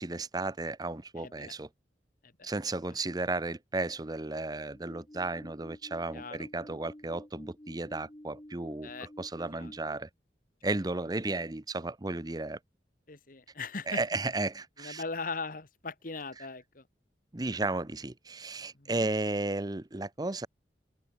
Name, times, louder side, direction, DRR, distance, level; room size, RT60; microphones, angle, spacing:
voice 1, 0.0-1.7 2.4-10.1 10.6-12.6 13.9-15.0 17.3-20.5, right 2 dB, 20° right, 0.7 m, -34 dB
voice 2, 1.2-1.5 2.2-2.5 6.1-6.5 8.8-9.1 9.5-9.7 13.1-14.0 14.8-16.9 18.7-19.1, left 4 dB, 50° left, 1.6 m, -40 dB
sound 1, 4.7-10.0, equal, 20° left, 1.8 m, -51 dB
head